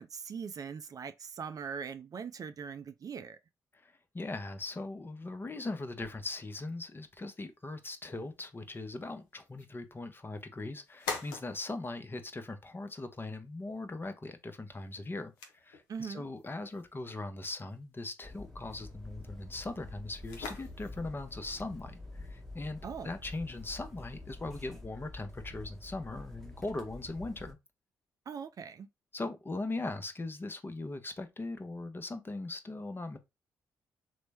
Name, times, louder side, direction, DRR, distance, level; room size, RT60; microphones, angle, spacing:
voice 1, 0.0-3.4 15.9-16.3 22.8-23.1 28.3-28.9, right 6 dB, 50° right, 0.4 m, -41 dB
voice 2, 3.8-27.6 29.1-33.2, left 2 dB, 25° left, 0.6 m, -40 dB
sound 1, 6.0-24.4, left 4 dB, 85° left, 0.5 m, -49 dB
sound 2, 18.2-27.5, left 2 dB, 5° left, 1.0 m, -47 dB
3.0 x 2.1 x 3.3 m
hypercardioid pair, 45°, 8 cm